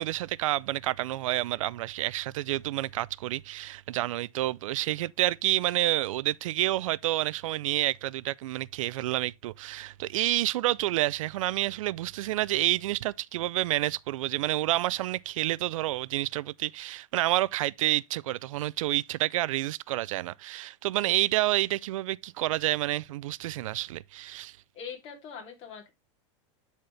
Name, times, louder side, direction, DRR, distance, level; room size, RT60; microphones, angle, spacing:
voice 1, 0.0-24.6, right 15 dB, 85° right, 0.4 m, -29 dB
voice 2, 24.7-25.9, left 6 dB, 35° left, 3.0 m, -42 dB
11.5 x 4.2 x 3.3 m
supercardioid pair, 160°, 16 cm